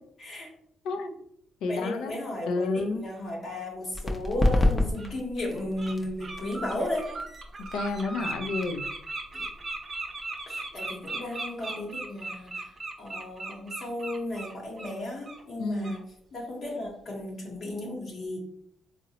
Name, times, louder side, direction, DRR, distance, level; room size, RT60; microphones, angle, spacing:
voice 1, 0.2-0.5 1.7-7.1 9.3-9.5 10.5-12.7 13.0-16.0 16.3-18.4, left 1 dB, 55° left, -2 dB, 0.9 m, -35 dB
voice 2, 0.8-1.2 1.6-3.0 7.6-8.9 15.6-16.0, left 3 dB, 85° left, 6 dB, 0.4 m, -30 dB
sound 1, 3.9-11.3, left 1 dB, 30° left, 0.5 m, -31 dB
Bird, 5.0-5.1 5.5-5.9 6.2-14.9 15.2-15.4 15.8-16.0, right 2 dB, 35° right, 0.5 m, -37 dB
3.7 x 2.0 x 2.8 m, 0.68 s
cardioid pair, 90°, 0 cm